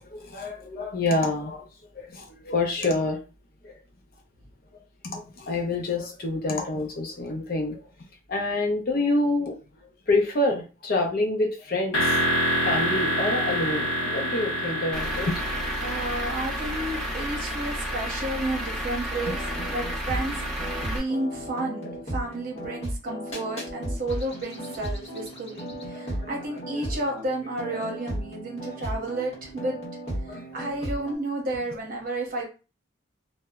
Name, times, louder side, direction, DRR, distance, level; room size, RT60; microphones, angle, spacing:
voice 1, 0.0-1.7 1.9-3.2 3.6-3.8 5.0-7.8 8.3-9.6 9.8-12.2 12.6-15.4 19.3-19.4 21.8-22.0 25.9-27.2 30.3-30.5, left 2 dB, 45° left, 0.5 m, -27 dB
sound 1, 11.9-19.7, right 1 dB, 80° left, 0.7 m, -28 dB
Truck / Idling, 14.9-21.0, equal, 5° left, 0.6 m, -32 dB
voice 2, 15.8-19.4 19.7-29.8 30.3-32.4, right 2 dB, 45° right, 0.8 m, -32 dB
sound 2, 19.1-31.2, right 1 dB, 30° left, 0.9 m, -35 dB
2.0 x 2.0 x 3.4 m
head